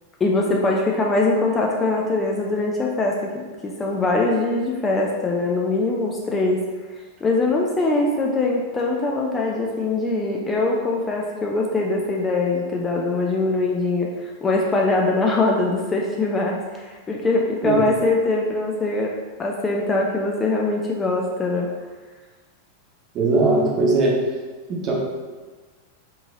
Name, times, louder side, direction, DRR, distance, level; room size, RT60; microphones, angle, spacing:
voice 1, 0.2-3.3 3.6-6.6 7.2-19.1 19.4-21.7, left 2 dB, 20° left, -1 dB, 0.5 m, -22 dB
voice 2, 23.1-24.2 24.7-24.9, right 3 dB, 35° right, -2 dB, 1.0 m, -19 dB
3.7 x 2.9 x 3.8 m, 1.3 s
figure-of-eight pair, 90°, 0 cm